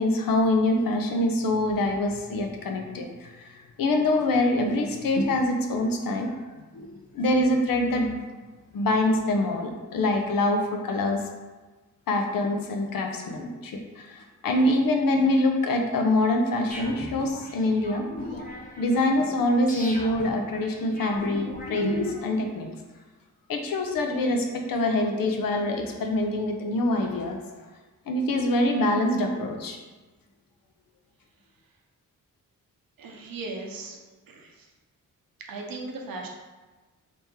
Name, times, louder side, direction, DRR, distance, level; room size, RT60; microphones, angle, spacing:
voice 1, 0.0-6.3 6.7-6.9 7.1-8.2 8.7-11.2 12.1-18.0 18.8-22.7 23.5-27.4 28.1-29.8, left 1 dB, 80° left, 3 dB, 0.6 m, -25 dB
sound 1, 16.7-22.5, left 1 dB, 25° left, 0.8 m, -39 dB
voice 2, 33.0-34.0 34.3-34.7 35.5-36.3, right 3 dB, 80° right, 1 dB, 0.7 m, -37 dB
3.0 x 2.9 x 3.5 m, 1.2 s
cardioid pair, 80°, 34 cm